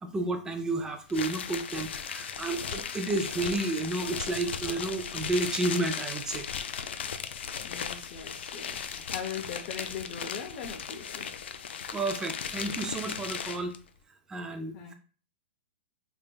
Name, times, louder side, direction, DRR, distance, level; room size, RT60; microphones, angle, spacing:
voice 1, 0.0-6.5 11.9-13.7 14.3-14.9, right 2 dB, 10° right, 5 dB, 0.5 m, -31 dB
sound 1, 1.1-13.8, left 7 dB, 85° left, 0.4 m, -37 dB
voice 2, 7.6-11.3 14.7-14.9, left 7 dB, 45° left, 0 dB, 0.6 m, -40 dB
3.4 x 3.3 x 2.2 m, 0.40 s
hypercardioid pair, 140°, 6 cm